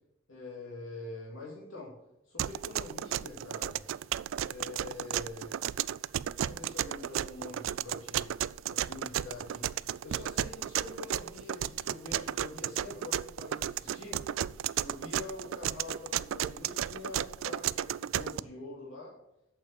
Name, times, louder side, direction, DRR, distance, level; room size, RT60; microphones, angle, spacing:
voice 1, 0.3-1.9 2.3-3.8 4.4-5.6 6.5-8.3 8.7-14.2 14.8-19.1, left 3 dB, 75° left, -4 dB, 2.6 m, -45 dB
sound 1, 2.4-18.4, right 11 dB, 70° right, 0.3 m, -33 dB
8.6 x 6.8 x 7.2 m, 0.85 s
head